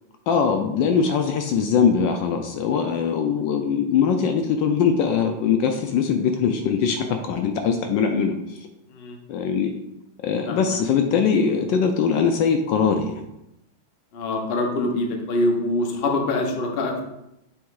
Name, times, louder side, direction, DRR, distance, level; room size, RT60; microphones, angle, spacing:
voice 1, 0.3-8.7 9.3-9.7 10.2-13.3, left 6 dB, 75° left, 5 dB, 1.2 m, -21 dB
voice 2, 10.5-10.8 14.1-17.0, left 2 dB, 45° left, 1 dB, 0.8 m, -24 dB
7.3 x 3.1 x 4.6 m, 0.86 s
omnidirectional pair, 2.2 m